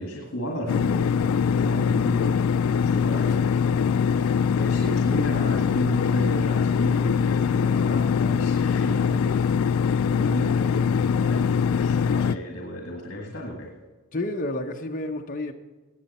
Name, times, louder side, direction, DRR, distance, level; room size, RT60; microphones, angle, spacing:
voice 1, 0.0-13.7, equal, 60° left, 0 dB, 1.9 m, -34 dB
sound 1, 0.7-12.4, left 6 dB, 75° left, 0.3 m, -22 dB
voice 2, 14.1-15.5, left 1 dB, 35° left, 2 dB, 0.9 m, -31 dB
18.5 x 8.1 x 4.3 m, 1.3 s
head